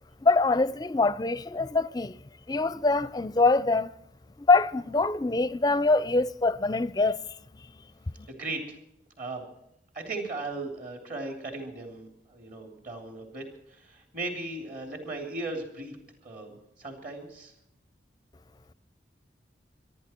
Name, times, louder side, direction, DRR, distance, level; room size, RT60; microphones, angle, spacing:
voice 1, 0.2-2.2 2.5-3.9 4.5-7.2, left 3 dB, 20° left, 0.5 m, -24 dB
voice 2, 8.3-8.8 9.2-9.5 9.9-16.0 16.2-17.5, right 2 dB, 50° right, 3.2 m, -37 dB
25.5 x 11.5 x 4.5 m
head